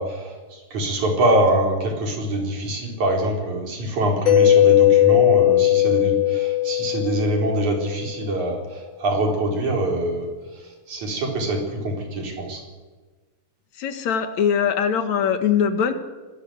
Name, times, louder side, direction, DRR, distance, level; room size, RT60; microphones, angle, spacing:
voice 1, 0.0-10.3 10.9-12.6, right 1 dB, 70° right, 2 dB, 5.8 m, -24 dB
Mallet percussion, 4.3-8.0, left 13 dB, 85° left, 3.3 m, -18 dB
voice 2, 13.8-15.9, left 7 dB, 65° left, 9 dB, 2.8 m, -21 dB
25.5 x 19.5 x 8.0 m, 1.3 s
omnidirectional pair, 3.5 m